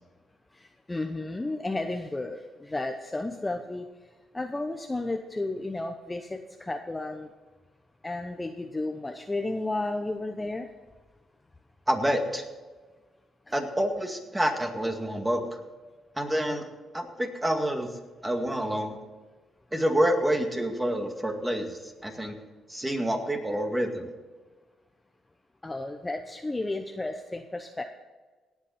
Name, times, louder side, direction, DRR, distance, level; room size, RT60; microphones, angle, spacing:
voice 1, 0.5-3.9 4.3-7.3 8.0-10.7 25.6-27.8, left 2 dB, 15° left, 5 dB, 0.9 m, -33 dB
voice 2, 11.9-12.4 13.5-15.4 16.2-17.9 18.2-19.0 19.7-22.3 22.7-24.1, equal, 10° right, 4 dB, 2.2 m, -28 dB
18.0 x 8.2 x 4.3 m, 1.3 s
cardioid pair, 90°, 0 cm